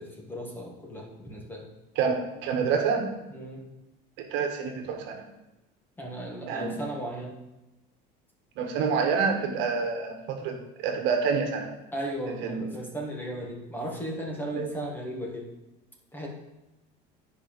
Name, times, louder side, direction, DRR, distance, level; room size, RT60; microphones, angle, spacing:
voice 1, 0.0-1.7 3.3-3.7 6.0-7.4 11.9-15.5 16.1-16.3, right 1 dB, 10° left, 0 dB, 1.6 m, -36 dB
voice 2, 1.9-3.1 4.3-5.2 6.5-6.8 8.6-11.7 12.4-12.6 14.6-14.7, right 5 dB, 60° right, 4 dB, 1.5 m, -27 dB
10.0 x 5.2 x 5.2 m, 0.96 s
cardioid pair, 150°, 21 cm